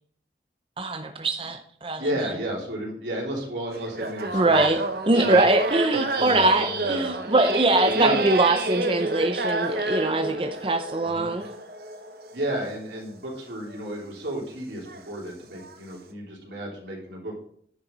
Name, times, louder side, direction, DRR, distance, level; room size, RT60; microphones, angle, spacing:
voice 1, 0.8-2.1 4.3-4.8 5.1-11.5, right 2 dB, 30° right, 5 dB, 0.6 m, -22 dB
voice 2, 2.0-4.6 5.2-5.4 6.2-7.1 7.8-8.2 11.0-11.3 12.3-17.3, right 1 dB, 85° right, -2 dB, 3.3 m, -32 dB
sound 1, 3.7-13.0 13.7-13.8 14.9-15.1 15.5-15.7, right 2 dB, 60° right, 0.9 m, -29 dB
10.0 x 6.9 x 4.0 m, 0.62 s
head